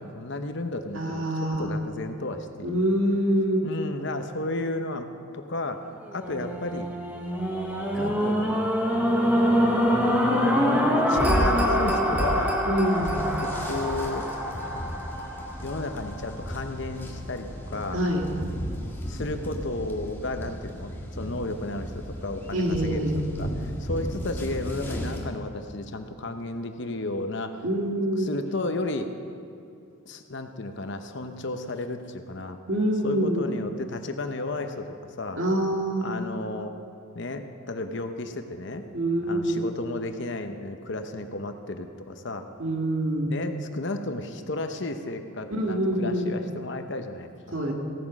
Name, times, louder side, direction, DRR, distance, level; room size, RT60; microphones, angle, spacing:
voice 1, 0.0-2.8 3.6-5.1 5.3-6.9 7.9-8.7 10.9-12.6 13.1-14.3 15.6-18.0 19.1-23.1 23.4-27.6 28.2-29.1 30.1-32.6 33.0-35.4 36.0-36.7 37.1-38.8 39.2-42.5 43.1-47.6, left 2 dB, 55° left, 7 dB, 0.9 m, -33 dB
voice 2, 0.9-1.7 2.6-3.6 12.7-13.2 17.9-18.3 22.5-23.2 27.6-28.3 32.7-33.4 35.4-36.2 38.9-39.7 42.6-43.3 45.5-46.3 47.5-47.7, right 1 dB, 70° right, 0 dB, 2.1 m, -25 dB
sound 1, 6.1-16.4 17.0-17.1, equal, 5° right, 1.3 m, -25 dB
sound 2, 12.9-25.2, equal, 10° left, 1.6 m, -36 dB
16.5 x 9.3 x 6.1 m, 2.5 s
head